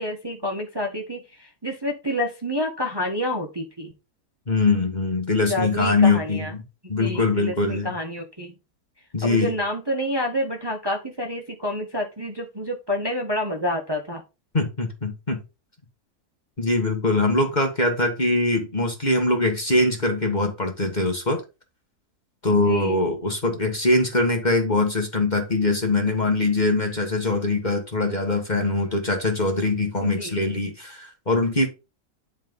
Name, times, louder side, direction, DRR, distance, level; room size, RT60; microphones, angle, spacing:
voice 1, 0.0-3.9 5.5-6.5 7.0-8.5 9.2-14.2 22.5-23.0 30.0-30.3, left 1 dB, 15° right, 1.4 m, -28 dB
voice 2, 4.5-6.6 6.9-7.9 9.1-9.5 14.5-15.4 16.6-21.4 22.4-31.7, left 2 dB, 25° left, 1.8 m, -22 dB
10.5 x 4.0 x 5.3 m
omnidirectional pair, 1.7 m